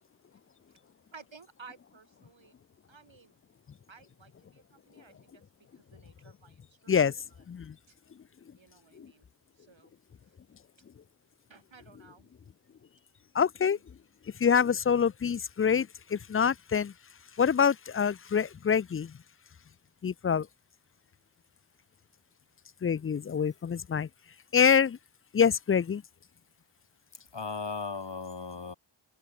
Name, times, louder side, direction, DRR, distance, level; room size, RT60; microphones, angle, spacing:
voice 1, 1.1-2.5 2.9-3.4 3.9-5.4 5.7-7.4 7.9-8.0 8.6-9.3 9.6-9.9 11.5-12.3, right 5 dB, 75° right, 6.3 m, -55 dB
voice 2, 13.3-13.8 14.4-16.9 17.4-19.1 20.0-20.5 22.8-24.1 24.5-25.0 25.3-26.0, left 7 dB, 30° left, 0.4 m, -26 dB
voice 3, 27.1-28.7, left 4 dB, 65° left, 5.4 m, -37 dB
cardioid pair, 45°, 46 cm